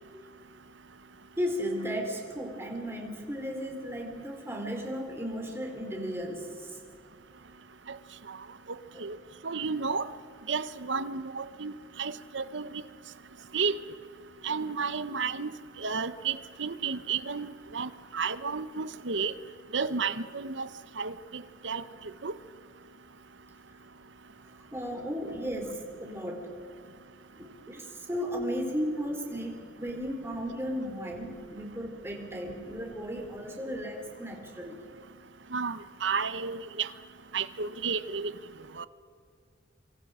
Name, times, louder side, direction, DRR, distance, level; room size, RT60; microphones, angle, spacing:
voice 1, 1.4-6.8 8.9-9.0 24.4-26.5 26.8-27.0 27.4-34.8, equal, 15° right, 1 dB, 3.9 m, -35 dB
voice 2, 8.7-9.2 9.4-10.1 10.5-11.7 12.0-12.8 13.5-13.8 14.4-15.5 15.8-19.3 19.7-20.7 21.0-21.8 22.2-22.3 35.5-36.9 37.3-38.3 38.8-38.9, right 5 dB, 70° right, 14 dB, 1.0 m, -32 dB
26.0 x 25.0 x 5.0 m, 2.1 s
head